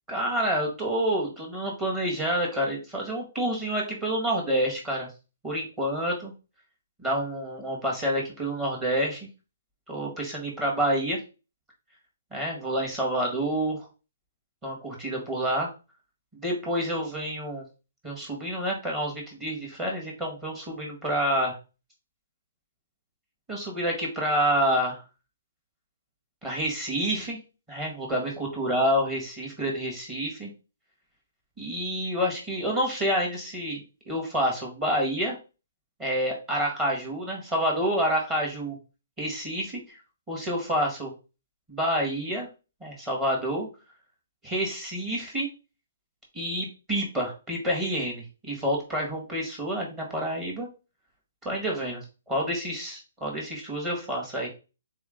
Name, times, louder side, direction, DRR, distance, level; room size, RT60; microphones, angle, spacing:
voice 1, 0.1-5.1 5.4-6.3 7.0-9.3 9.9-11.2 12.3-13.8 14.6-15.7 16.3-17.6 18.0-21.6 23.5-25.0 26.4-27.4 27.7-30.5 31.6-33.8 34.1-35.4 36.0-38.8 39.2-40.0 40.3-41.1 41.7-42.5 42.8-43.7 44.4-45.5 46.3-50.7 51.5-54.5, equal, 15° right, -2 dB, 1.7 m, -28 dB
3.8 x 3.6 x 3.8 m, 0.31 s
hypercardioid pair, 155°, 0 cm